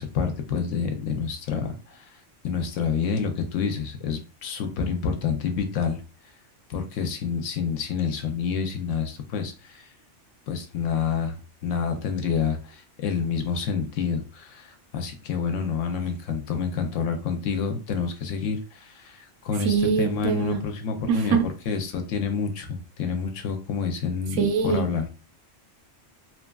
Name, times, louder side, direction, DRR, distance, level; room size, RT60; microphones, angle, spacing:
voice 1, 0.0-2.1 2.4-6.0 6.7-9.9 10.5-11.4 11.6-21.4 21.7-25.1, left 6 dB, 80° left, 0.9 m, -28 dB
voice 2, 19.6-20.6 21.1-21.4 24.4-25.1, right 6 dB, 75° right, 0.9 m, -23 dB
2.9 x 2.3 x 2.3 m
omnidirectional pair, 1.3 m